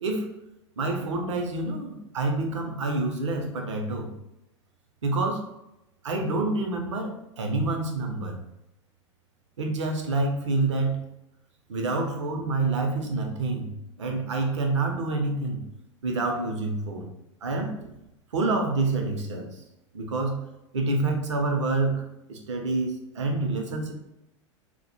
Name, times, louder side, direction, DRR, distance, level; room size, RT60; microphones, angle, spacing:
voice 1, 0.0-0.3 0.8-4.1 5.0-5.5 6.0-8.4 9.6-11.0 11.7-15.6 16.0-17.1 17.4-18.0 18.3-19.6 19.9-20.4 20.7-22.0 22.3-23.9, right 3 dB, 70° right, 3 dB, 0.5 m, -27 dB
2.1 x 2.0 x 2.8 m, 0.89 s
figure-of-eight pair, 90°, 16 cm